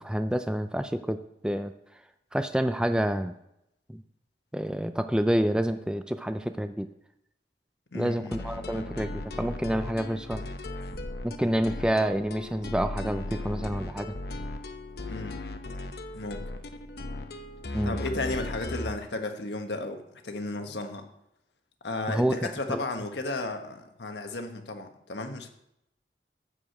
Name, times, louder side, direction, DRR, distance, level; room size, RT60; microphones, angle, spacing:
voice 1, 0.0-1.7 2.3-3.3 3.9-4.0 4.5-6.9 7.9-10.4 11.2-14.1 17.7-18.0 22.1-22.4 22.7-22.8, equal, 5° right, 8 dB, 0.4 m, -28 dB
voice 2, 7.9-8.4 15.1-15.4 16.1-16.4 17.8-21.0 21.8-25.5, left 2 dB, 80° left, 5 dB, 1.3 m, -34 dB
sound 1, 8.3-19.0, left 2 dB, 65° left, 0.8 m, -37 dB
12.5 x 4.9 x 7.9 m, 0.81 s
head